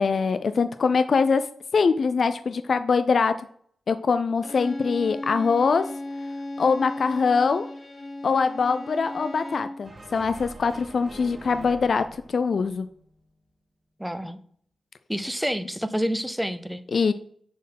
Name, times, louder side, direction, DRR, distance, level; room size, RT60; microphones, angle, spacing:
voice 1, 0.0-1.5 1.7-3.3 3.9-5.9 6.6-7.7 8.2-12.9 16.9-17.1, left 5 dB, 55° left, 11 dB, 0.3 m, -23 dB
Bowed string instrument, 4.4-9.9, left 1 dB, 35° left, 1.1 m, -35 dB
sound 1, 9.8-13.3, right 2 dB, 30° right, 1.8 m, -45 dB
voice 2, 14.0-14.4 15.1-16.8, equal, ahead, 12 dB, 0.5 m, -28 dB
7.1 x 4.4 x 5.7 m, 0.62 s
wide cardioid pair, 110°, 0 cm